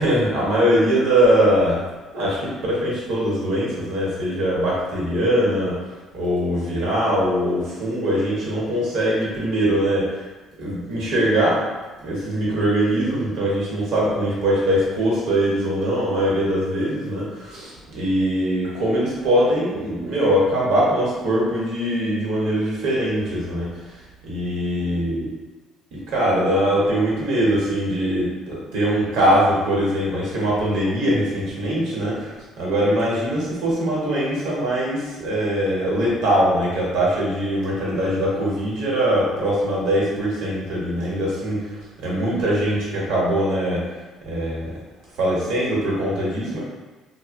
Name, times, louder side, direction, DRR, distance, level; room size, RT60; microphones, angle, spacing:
voice 1, 0.0-1.8 2.1-5.8 6.1-10.2 10.6-11.6 12.0-23.7 24.2-25.3 25.9-43.8 44.2-44.7 45.2-46.6, equal, 75° right, -6 dB, 1.0 m, -22 dB
2.8 x 2.1 x 2.5 m, 1.2 s
cardioid pair, 115°, 0 cm